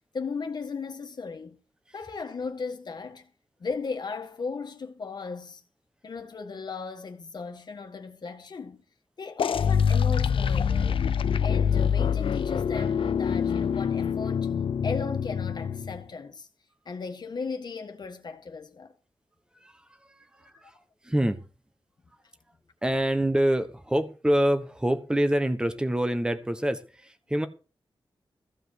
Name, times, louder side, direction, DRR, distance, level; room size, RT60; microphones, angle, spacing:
voice 1, 0.1-1.6 1.9-3.3 3.6-5.6 6.0-8.8 9.2-11.1 11.4-16.5 16.8-18.9, left 4 dB, 55° left, 1.6 m, -36 dB
sound 1, 9.4-16.0, left 7 dB, 80° left, 0.7 m, -25 dB
voice 2, 19.6-20.8 21.0-21.4 22.8-27.5, right 1 dB, 10° right, 1.1 m, -26 dB
15.0 x 5.1 x 8.2 m
wide cardioid pair, 155°, 9 cm